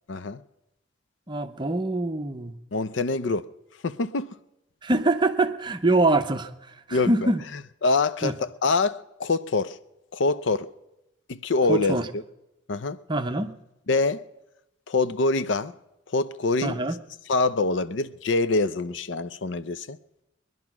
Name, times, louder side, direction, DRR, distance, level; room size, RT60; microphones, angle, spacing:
voice 1, 0.1-0.4 2.7-3.5 3.8-4.3 6.9-7.3 7.8-9.8 10.1-10.7 11.3-12.2 12.7-13.0 13.9-14.2 14.9-15.7 16.1-16.8 17.3-20.0, left 3 dB, 65° left, 0.6 m, -25 dB
voice 2, 1.3-2.5 4.8-6.5 6.9-7.4 8.2-8.3 11.7-12.1 13.1-13.5 16.6-17.0, right 2 dB, 25° right, 0.7 m, -24 dB
21.0 x 11.0 x 6.0 m
head